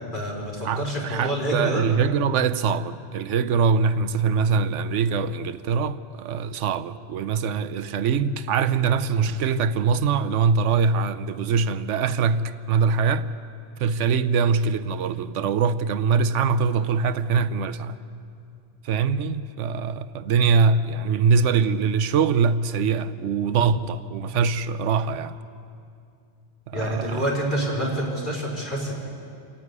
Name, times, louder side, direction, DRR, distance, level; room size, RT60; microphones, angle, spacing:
voice 1, 0.1-1.8 26.7-28.9, equal, 40° left, 4.6 m, -27 dB
voice 2, 0.6-13.3 13.8-18.0 18.8-25.4 26.7-27.2, right 5 dB, 90° right, 1.0 m, -23 dB
28.0 x 9.8 x 9.6 m
omnidirectional pair, 1.2 m